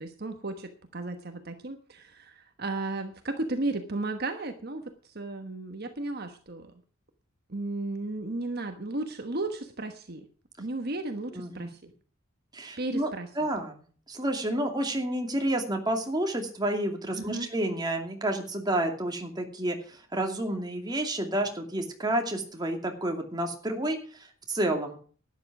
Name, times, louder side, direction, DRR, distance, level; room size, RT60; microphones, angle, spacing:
voice 1, 0.0-6.7 7.5-10.2 10.6-11.8 12.8-13.3 17.1-17.5, right 2 dB, 50° right, 7 dB, 1.2 m, -34 dB
voice 2, 11.3-11.7 12.5-13.1 13.4-25.0, right 1 dB, 20° right, 3 dB, 2.5 m, -30 dB
12.0 x 10.5 x 6.0 m, 0.42 s
head